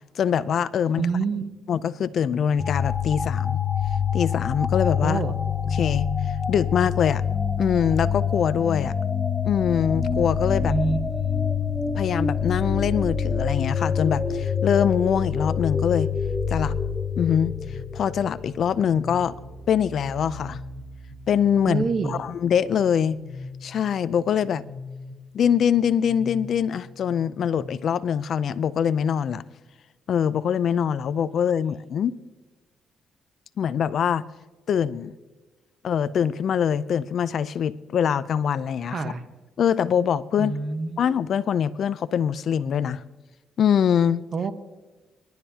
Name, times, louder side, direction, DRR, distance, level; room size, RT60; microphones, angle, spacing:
voice 1, 0.2-1.0 1.7-3.6 4.1-5.2 5.7-6.1 6.5-7.2 7.6-8.9 9.4-10.7 11.9-16.1 16.5-16.7 17.2-17.5 17.9-19.3 19.7-20.6 21.3-23.2 23.6-24.6 25.3-29.4 30.1-32.1 33.6-34.2 34.7-35.1 35.8-39.0 39.6-40.5 41.0-43.0 43.6-44.2, left 8 dB, 60° left, 0.5 m, -23 dB
voice 2, 1.0-1.5 5.0-5.3 10.7-11.0 11.4-11.5 21.6-22.2 38.9-39.2 40.4-41.0 44.3-44.5, right 4 dB, 50° right, 1.2 m, -26 dB
sound 1, 2.6-18.9, left 7 dB, 20° left, 0.8 m, -26 dB
sound 2, 9.8-18.9, right 6 dB, 80° right, 5.0 m, -42 dB
sound 3, 17.5-27.6, left 2 dB, 20° right, 1.8 m, -42 dB
25.5 x 12.0 x 2.9 m
cardioid pair, 90°, 0 cm